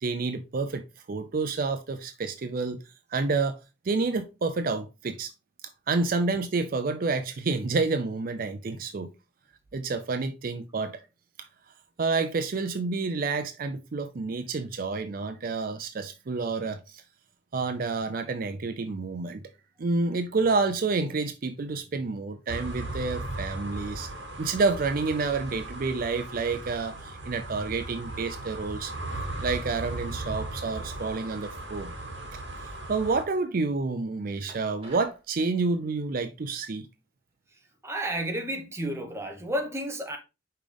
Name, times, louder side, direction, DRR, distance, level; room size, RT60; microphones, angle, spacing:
voice 1, 0.0-2.8 3.1-3.6 3.8-5.3 5.9-9.1 9.7-11.0 12.0-17.0 17.5-19.4 19.8-24.1 24.4-28.9 29.4-31.9 32.3-32.4 32.9-36.9, right 3 dB, 50° right, 0.5 m, -29 dB
sound 1, 22.5-33.2, right 2 dB, 80° right, 1.7 m, -37 dB
sound 2, 34.5-35.2, right 2 dB, 30° right, 2.2 m, -48 dB
voice 2, 37.8-40.2, right 1 dB, 15° right, 1.0 m, -31 dB
5.6 x 5.0 x 3.4 m
head